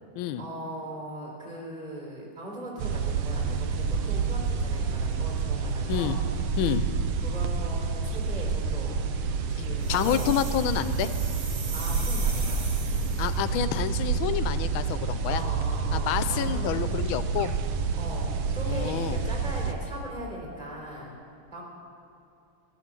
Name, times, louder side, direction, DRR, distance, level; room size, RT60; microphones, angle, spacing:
voice 1, 0.4-6.2 7.2-9.0 9.5-10.3 11.7-12.7 15.3-16.8 17.9-21.1 21.5-21.6, right 1 dB, 15° right, -1 dB, 3.8 m, -39 dB
sound 1, 2.8-19.7, right 5 dB, 75° right, 1.7 m, -28 dB
sound 2, 9.8-13.5, right 4 dB, 40° right, 1.2 m, -40 dB
voice 2, 9.9-11.1 13.2-15.4 15.9-17.5 18.6-19.2, left 10 dB, 75° left, 12 dB, 1.4 m, -28 dB
15.0 x 11.0 x 7.5 m, 2.6 s
omnidirectional pair, 2.4 m